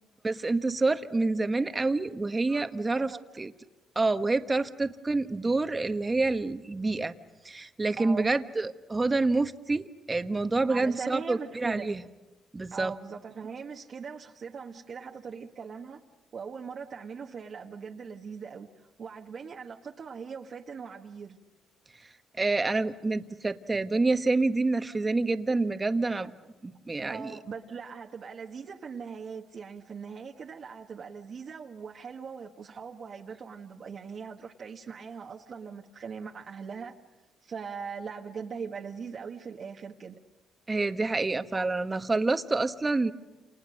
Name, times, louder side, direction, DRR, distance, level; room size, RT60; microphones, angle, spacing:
voice 1, 0.2-3.5 3.9-7.1 7.4-12.0 12.5-12.9 22.4-26.3 26.6-27.3 40.7-43.1, right 3 dB, 25° right, 9 dB, 1.3 m, -27 dB
voice 2, 2.9-3.2 8.0-8.3 10.7-11.9 12.7-16.0 16.3-21.4 26.2-26.3 27.1-37.0 37.4-40.2, right 6 dB, 50° right, 1 dB, 1.5 m, -40 dB
29.0 x 28.0 x 6.4 m, 1.1 s
cardioid pair, 90°, 0 cm